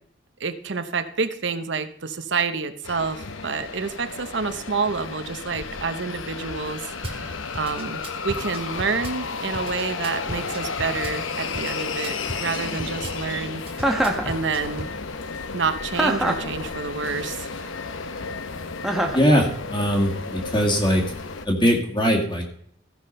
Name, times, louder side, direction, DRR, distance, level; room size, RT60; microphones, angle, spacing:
voice 1, 0.4-13.9 14.2-14.9 15.5-17.7, right 5 dB, 70° right, 9 dB, 0.8 m, -28 dB
sound 1, 2.8-21.5, left 4 dB, 90° left, 0.9 m, -33 dB
Drum kit / Bass drum, 7.0-7.2 7.5-9.2 9.5-11.2 11.5-13.2 13.7-14.9, right 1 dB, 30° right, 1.6 m, -36 dB
Chuckle chortle, 13.8-14.3 15.9-16.5 18.8-19.3, right 1 dB, ahead, 1.1 m, -23 dB
voice 2, 19.1-21.0 21.5-22.5, equal, 25° left, 1 dB, 2.0 m, -21 dB
14.5 x 5.8 x 5.4 m, 0.66 s
head